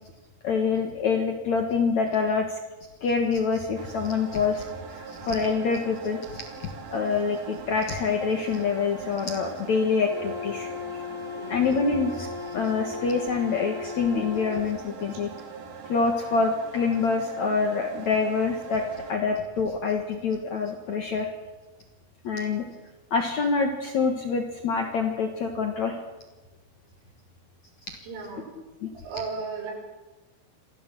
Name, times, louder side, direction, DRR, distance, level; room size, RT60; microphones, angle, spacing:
voice 1, 0.4-2.5 3.0-4.6 4.9-11.0 11.5-15.3 15.9-18.8 19.1-21.3 22.2-22.6 23.1-26.0 28.8-28.9, left 5 dB, 75° left, 4 dB, 1.6 m, -26 dB
sound 1, 3.7-19.1, right 5 dB, 50° right, 3.0 m, -42 dB
Wind instrument woodwind instrument, 10.1-14.7, left 7 dB, 35° left, 4.3 m, -37 dB
voice 2, 28.1-28.4 29.0-29.7, right 4 dB, 90° right, 0 dB, 8.1 m, -35 dB
25.0 x 16.0 x 7.7 m, 1.1 s
omnidirectional pair, 6.0 m